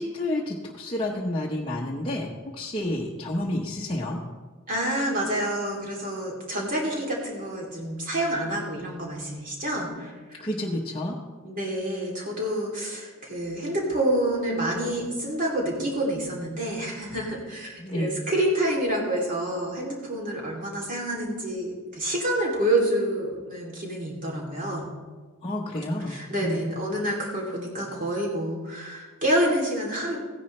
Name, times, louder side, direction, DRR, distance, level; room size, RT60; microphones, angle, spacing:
voice 1, 0.0-4.2 10.4-11.1 17.8-18.2 25.4-26.6, left 1 dB, 25° left, -4 dB, 0.9 m, -30 dB
voice 2, 4.7-10.4 11.4-24.9 26.1-30.2, right 1 dB, 40° right, -2 dB, 2.8 m, -28 dB
16.0 x 10.0 x 3.2 m, 1.4 s
head